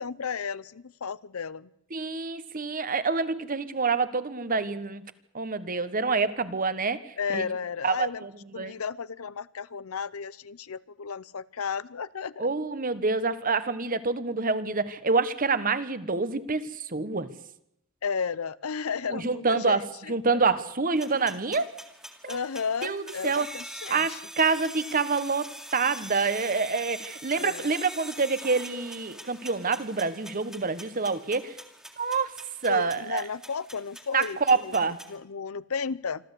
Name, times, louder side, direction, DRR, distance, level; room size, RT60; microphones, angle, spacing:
voice 1, 0.0-1.7 7.2-8.3 8.5-12.5 18.0-20.4 22.3-24.2 27.4-27.7 32.7-36.2, left 6 dB, 80° left, 18 dB, 0.7 m, -33 dB
voice 2, 1.9-5.0 5.3-7.4 7.8-8.7 12.4-17.3 19.1-21.7 22.2-22.4 22.8-23.5 23.9-31.6 32.0-32.3 32.6-33.2 34.1-35.0, right 4 dB, 40° right, 13 dB, 1.2 m, -27 dB
sound 1, 21.0-35.2, right 1 dB, 5° right, 2.0 m, -44 dB
26.0 x 13.0 x 8.2 m, 0.79 s
head